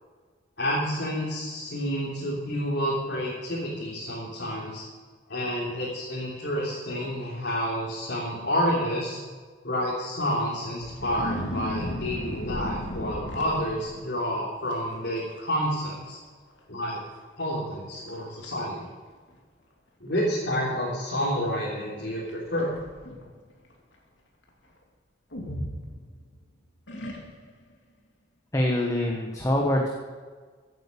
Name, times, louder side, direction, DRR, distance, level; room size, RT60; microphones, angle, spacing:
voice 1, 0.6-4.9 5.3-9.2 9.6-16.2 16.7-17.0 17.4-18.9 20.0-22.7, equal, 65° left, -7 dB, 3.5 m, -29 dB
sound 1, 10.8-14.1 14.7-15.0 15.3-15.7 16.0-16.1 16.8-16.9 17.5-17.6 18.1-18.5 19.3-19.4 22.3-23.3 25.3-26.4 26.9-27.6, equal, 80° left, 2.7 m, -35 dB
voice 2, 28.5-29.9, left 1 dB, 15° left, 0 dB, 1.4 m, -24 dB
15.5 x 9.2 x 7.0 m, 1.5 s
head